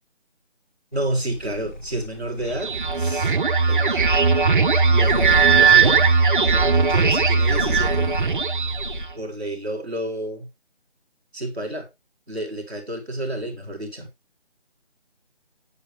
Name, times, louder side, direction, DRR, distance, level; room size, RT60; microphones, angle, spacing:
sound 1, 0.9-9.1, left 1 dB, 40° left, 1.4 m, -33 dB
voice 1, 0.9-3.3 3.7-4.5 4.9-6.0 6.4-8.1 9.1-10.5 11.3-11.9 12.3-14.1, right 1 dB, 5° left, 1.0 m, -30 dB
sound 2, 2.5-9.1, right 5 dB, 50° right, 0.9 m, -18 dB
8.2 x 7.1 x 3.4 m
figure-of-eight pair, 170°, 34 cm